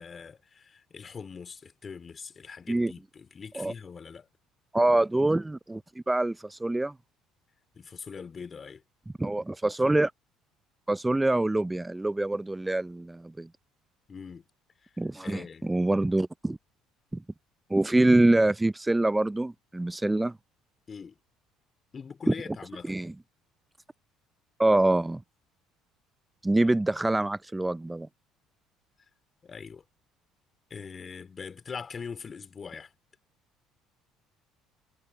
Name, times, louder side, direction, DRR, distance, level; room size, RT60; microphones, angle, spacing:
voice 1, 0.0-4.3 7.7-8.8 14.1-14.5 14.8-14.9 15.2-15.7 20.9-21.2 21.9-23.0 29.4-29.8 30.7-32.9, left 6 dB, 35° left, 2.8 m, -42 dB
voice 2, 4.7-5.8 6.1-6.9 9.2-10.1 10.9-13.5 15.0-16.6 17.1-17.2 17.7-20.3 22.9-23.1 24.6-25.2 26.4-28.1, right 2 dB, 10° right, 0.5 m, -25 dB
hypercardioid pair, 60°, 0 cm